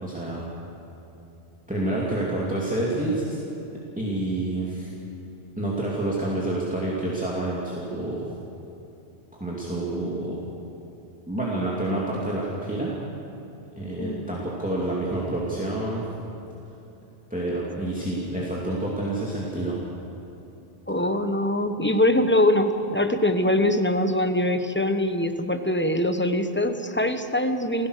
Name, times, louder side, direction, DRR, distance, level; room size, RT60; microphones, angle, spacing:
voice 1, 0.0-0.4 1.7-3.4 4.0-4.9 5.6-8.2 9.4-10.4 11.3-12.9 13.8-16.0 17.3-19.8, right 1 dB, 5° right, -6 dB, 2.8 m, -28 dB
voice 2, 20.9-27.9, left 1 dB, 10° left, 7 dB, 0.9 m, -23 dB
29.5 x 15.5 x 6.6 m, 2.9 s
omnidirectional pair, 1.2 m